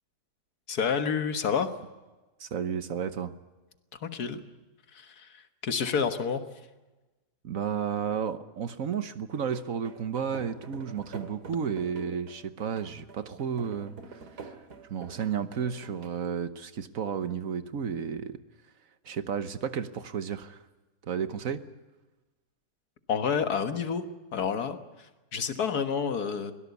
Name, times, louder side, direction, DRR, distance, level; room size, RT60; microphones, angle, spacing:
voice 1, 0.7-1.7 4.0-4.4 4.9-6.4 23.1-24.0 24.3-26.5, left 6 dB, 75° left, 9 dB, 1.9 m, -29 dB
voice 2, 2.4-3.3 7.4-13.9 14.4-14.6 14.9-18.4 19.0-20.6 21.0-21.6, right 7 dB, 60° right, 12 dB, 1.4 m, -32 dB
sound 1, 9.3-16.1, right 4 dB, 85° right, 2.8 m, -46 dB
23.5 x 18.0 x 8.2 m, 1.2 s
omnidirectional pair, 1.7 m